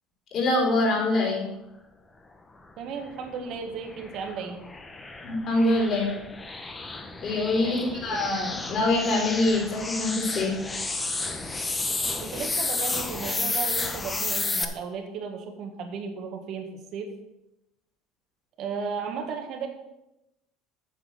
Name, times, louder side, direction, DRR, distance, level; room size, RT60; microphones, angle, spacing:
voice 1, 0.3-1.5 5.2-6.1 7.2-10.6, left 2 dB, 45° left, -2 dB, 4.0 m, -24 dB
voice 2, 2.8-4.6 7.6-8.2 12.2-17.1 18.6-19.7, right 5 dB, 55° right, 4 dB, 1.5 m, -35 dB
sound 1, 3.1-14.6, left 3 dB, 15° left, 0.9 m, -32 dB
8.2 x 6.0 x 6.7 m, 0.90 s
cardioid pair, 130°, 0 cm